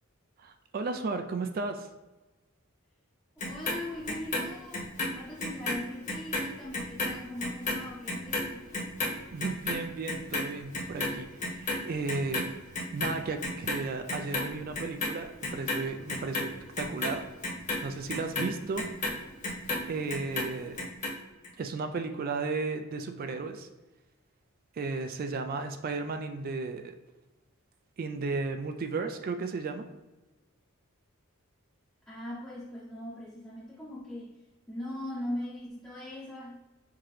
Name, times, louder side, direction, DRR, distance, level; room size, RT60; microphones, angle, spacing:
voice 1, 0.4-1.9 9.3-17.3 17.8-18.9 19.9-20.9 21.6-23.7 24.7-27.0 28.0-29.9, right 4 dB, 40° right, 7 dB, 0.3 m, -34 dB
Clock, 3.4-5.8 6.1-12.5 12.7-13.8 14.1-15.1 15.4-19.8 20.1-21.1 21.4-21.5, left 2 dB, 35° left, 1.1 m, -32 dB
voice 2, 3.4-8.7 32.1-34.3 34.7-36.6, left 1 dB, 5° left, -8 dB, 0.7 m, -40 dB
5.7 x 2.8 x 3.2 m, 1.1 s
head